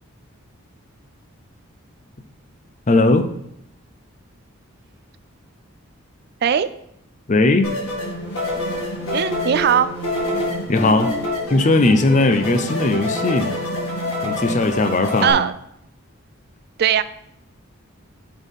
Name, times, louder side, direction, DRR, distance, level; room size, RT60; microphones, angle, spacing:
voice 1, 2.9-3.3 7.3-7.7 10.7-11.1 11.5-13.5 14.2-15.4, left 2 dB, 35° left, 8 dB, 0.5 m, -18 dB
sound 1, 7.6-15.3, left 1 dB, 75° left, 1.7 m, -27 dB
sound 2, 8.0-14.6, equal, 60° left, 1.7 m, -35 dB
voice 2, 9.1-9.9 15.2-15.5 16.8-17.0, right 8 dB, 50° right, 14 dB, 0.3 m, -18 dB
6.3 x 3.9 x 5.2 m, 0.77 s
head